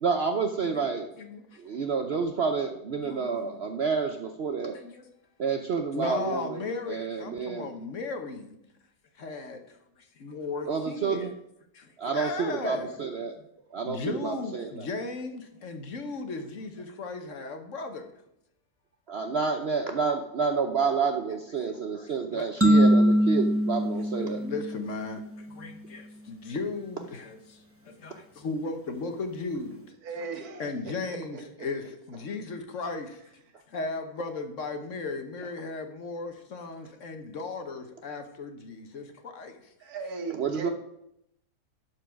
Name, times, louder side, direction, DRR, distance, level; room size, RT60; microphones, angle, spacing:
voice 1, 0.0-1.1 1.6-4.8 5.4-7.7 10.7-11.3 12.0-13.3 13.7-14.9 19.1-24.4 40.3-40.7, right 5 dB, 55° right, 5 dB, 0.8 m, -29 dB
voice 2, 1.2-1.6 3.0-3.6 4.7-5.1 5.9-8.6 9.2-9.8 10.2-11.3 11.7-13.0 13.3-13.5 13.8-18.1 21.7-22.5 24.2-29.9 30.6-33.4 33.7-39.6, left 3 dB, 55° left, 6 dB, 1.3 m, -36 dB
sound 1, 22.6-25.3, equal, 10° right, 0.8 m, -22 dB
voice 3, 30.0-31.7 39.8-40.7, right 4 dB, 75° right, 6 dB, 1.6 m, -38 dB
11.5 x 4.7 x 6.2 m, 0.79 s
omnidirectional pair, 1.6 m